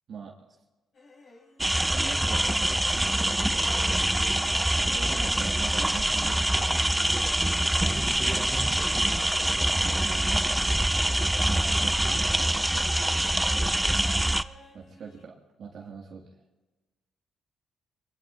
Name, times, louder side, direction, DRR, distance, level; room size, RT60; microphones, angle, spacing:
sound 1, 0.9-2.7 3.0-15.2, left 2 dB, 55° left, 6.7 m, -51 dB
sound 2, 1.6-14.4, right 1 dB, 5° right, 0.4 m, -25 dB
voice 1, 1.9-3.7 4.9-6.7 9.7-10.6 11.2-12.4 14.7-16.4, right 5 dB, 60° right, -2 dB, 1.7 m, -43 dB
voice 2, 7.8-9.0 13.3-14.0, right 2 dB, 25° right, 1 dB, 3.3 m, -41 dB
26.0 x 21.5 x 2.5 m, 1.2 s
cardioid pair, 90°, 0 cm